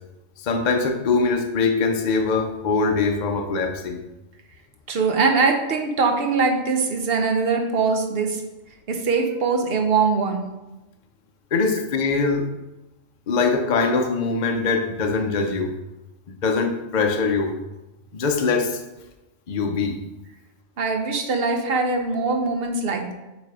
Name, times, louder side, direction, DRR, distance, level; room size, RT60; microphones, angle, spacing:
voice 1, 0.4-4.0 11.5-12.5 13.3-15.8 16.3-17.5 18.1-18.8 19.5-20.0, left 4 dB, 45° left, 4 dB, 0.7 m, -22 dB
voice 2, 4.9-8.4 8.9-10.4 20.8-23.1, right 4 dB, 55° right, 4 dB, 1.0 m, -22 dB
8.5 x 3.1 x 4.8 m, 1.0 s
omnidirectional pair, 1.3 m